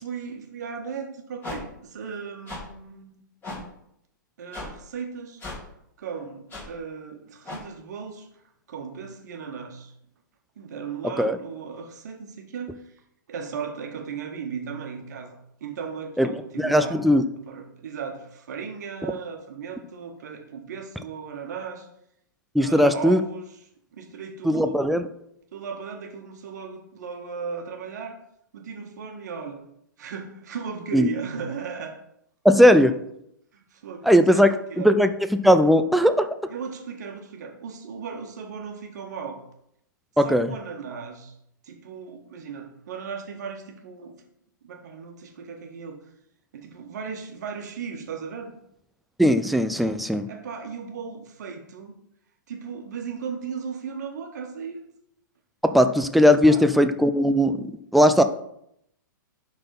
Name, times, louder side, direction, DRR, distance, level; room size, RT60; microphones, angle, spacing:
voice 1, 0.0-3.2 4.4-5.4 6.0-8.3 8.7-9.9 10.6-12.8 13.3-17.0 17.5-21.9 22.6-23.5 23.9-24.8 25.5-28.2 28.5-29.6 30.0-31.9 33.5-34.9 36.5-39.4 40.2-41.3 41.6-44.1 44.6-46.0 46.5-48.5 50.3-51.9 52.5-54.8 56.4-56.7, right 6 dB, 55° right, 3 dB, 1.6 m, -36 dB
sound 1, 1.4-1.6 2.5-2.6 3.4-3.6 4.5-4.7 5.4-5.6 6.5-6.6 7.4-7.6, left 3 dB, 15° left, 3.4 m, -35 dB
voice 2, 16.6-17.2 22.5-23.2 24.4-25.1 30.9-31.1 32.4-33.0 34.0-34.5 34.8-36.3 40.2-40.5 49.2-50.3 55.6-58.2, equal, ahead, 8 dB, 0.4 m, -18 dB
11.0 x 4.1 x 4.1 m, 0.76 s
figure-of-eight pair, 110°, 11 cm